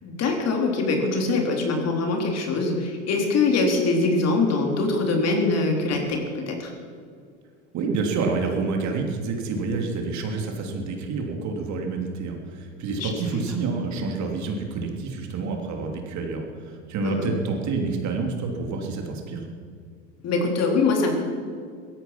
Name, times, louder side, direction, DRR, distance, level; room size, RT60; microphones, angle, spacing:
voice 1, 0.0-6.7 13.0-13.4 17.0-17.3 20.2-21.1, left 3 dB, 40° left, 2 dB, 3.6 m, -23 dB
voice 2, 7.7-19.4, right 4 dB, 50° right, 2 dB, 3.1 m, -28 dB
17.0 x 13.5 x 6.0 m, 2.2 s
hypercardioid pair, 85°, 37 cm